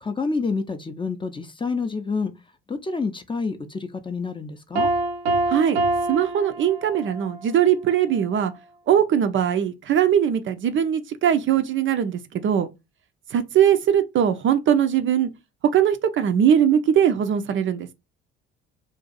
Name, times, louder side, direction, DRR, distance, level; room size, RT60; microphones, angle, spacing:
voice 1, 0.0-2.3 2.7-4.9, left 4 dB, 15° left, 0.5 m, -28 dB
Piano, 4.8-7.3, right 2 dB, 85° right, 0.6 m, -25 dB
voice 2, 6.1-8.5 8.9-12.7 13.3-15.3 15.7-17.9, right 9 dB, 40° right, 0.5 m, -20 dB
2.6 x 2.4 x 3.9 m
hypercardioid pair, 50°, 30 cm